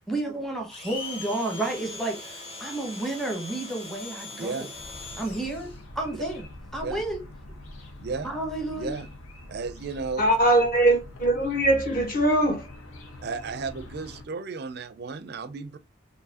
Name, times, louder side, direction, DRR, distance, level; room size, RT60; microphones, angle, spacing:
voice 1, 0.1-4.7 5.2-6.5 6.7-7.2 8.2-8.9, right 2 dB, ahead, 0.8 m, -31 dB
Domestic sounds home sounds, 0.7-5.8, left 3 dB, 30° left, 1.0 m, -40 dB
voice 2, 4.3-4.6 6.8-7.0 8.0-8.3 8.8-9.1 9.5-10.2 13.2-15.8, right 4 dB, 50° right, 0.4 m, -34 dB
sound 1, 4.7-14.2, left 1 dB, 90° left, 0.8 m, -44 dB
voice 3, 10.2-12.7, right 1 dB, 45° left, 1.5 m, -21 dB
4.7 x 2.6 x 2.8 m
head